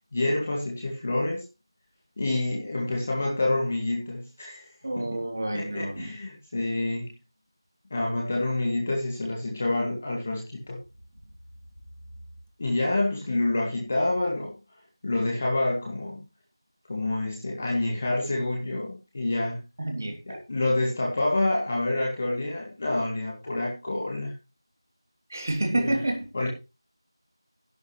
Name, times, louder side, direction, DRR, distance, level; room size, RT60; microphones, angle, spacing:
voice 1, 0.1-1.4 2.2-4.7 5.0-5.1 5.5-7.1 7.9-10.8 12.6-14.6 15.0-16.3 16.9-19.6 20.3-24.3 25.7-26.0 26.3-26.5, left 2 dB, 20° left, 2.2 m, -27 dB
voice 2, 4.8-6.1 19.8-20.4 25.3-26.3, right 1 dB, 35° right, 3.0 m, -29 dB
12.0 x 11.0 x 3.3 m
figure-of-eight pair, 175°, 3 cm